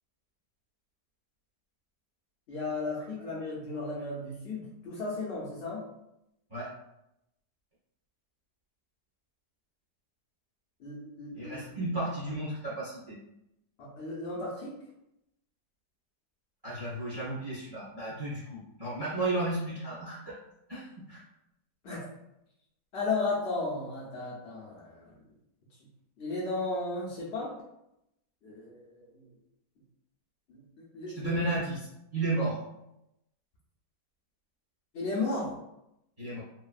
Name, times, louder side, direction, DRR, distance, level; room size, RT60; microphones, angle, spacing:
voice 1, 2.5-5.8 10.8-11.6 13.8-14.8 21.8-22.0 22.9-25.1 26.2-27.6 28.4-29.2 30.5-31.4 34.9-35.5, left 3 dB, 75° left, -6 dB, 0.6 m, -35 dB
voice 2, 11.3-13.2 16.6-20.3 20.7-21.2 31.2-31.8 32.1-32.6 36.2-36.4, right 2 dB, 25° right, -11 dB, 0.5 m, -33 dB
3.1 x 2.1 x 2.3 m, 0.84 s
omnidirectional pair, 1.8 m